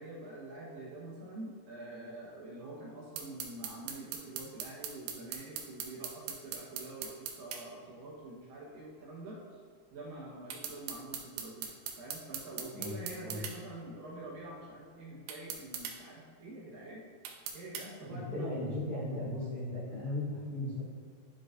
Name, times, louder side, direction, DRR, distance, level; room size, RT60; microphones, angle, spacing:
voice 1, 0.0-9.6 9.9-11.7 12.0-17.0 17.5-18.6, right 2 dB, 70° right, -5 dB, 2.5 m, -46 dB
sound 1, 3.2-7.6 10.5-13.6 15.3-16.0 17.2-17.9, right 7 dB, 85° right, 2.7 m, -40 dB
voice 2, 18.1-20.8, left 1 dB, 45° left, -12 dB, 1.9 m, -36 dB
10.5 x 4.7 x 2.5 m, 2.1 s
omnidirectional pair, 4.6 m